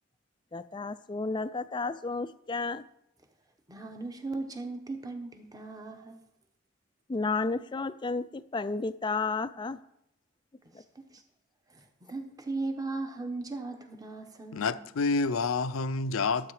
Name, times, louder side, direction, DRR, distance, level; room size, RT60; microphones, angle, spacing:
voice 1, 0.5-2.8 7.1-9.8, left 3 dB, 20° left, 0.3 m, -32 dB
voice 2, 3.7-6.2 10.9-11.2 11.7-14.8, right 3 dB, 15° right, 1.0 m, -37 dB
voice 3, 14.5-16.5, left 4 dB, 80° left, 0.5 m, -28 dB
12.5 x 7.8 x 4.8 m
head